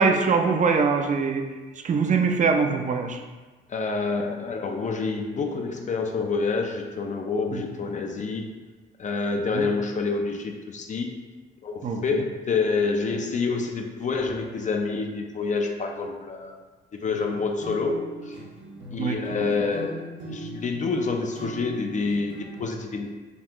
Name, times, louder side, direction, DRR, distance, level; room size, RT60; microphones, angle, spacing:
voice 1, 0.0-1.4 1.8-3.2 7.5-7.6 9.5-9.7 11.8-12.0 19.0-19.2, right 5 dB, 40° right, 4 dB, 0.5 m, -22 dB
voice 2, 3.7-8.5 9.0-11.1 11.6-16.6 16.9-18.4 18.9-20.0 20.3-23.3, left 4 dB, 40° left, 3 dB, 0.4 m, -27 dB
sound 1, 17.0-22.6, right 2 dB, 65° right, 1.0 m, -38 dB
5.1 x 2.4 x 2.9 m, 1.3 s
cardioid pair, 90°, 20 cm